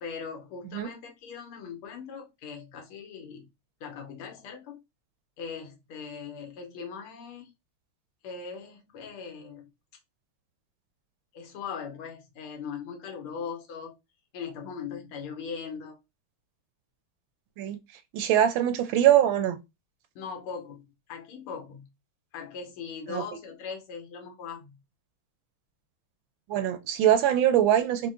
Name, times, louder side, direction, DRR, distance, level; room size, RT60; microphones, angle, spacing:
voice 1, 0.0-3.5 3.8-4.8 5.4-7.5 8.2-9.7 11.3-14.0 14.3-16.0 20.1-20.8 21.1-21.9 22.3-24.7, left 6 dB, 80° left, 1.7 m, -40 dB
voice 2, 18.1-19.6 23.1-23.2 26.5-28.1, right 11 dB, 75° right, 1.2 m, -22 dB
4.4 x 2.1 x 3.7 m
omnidirectional pair, 2.4 m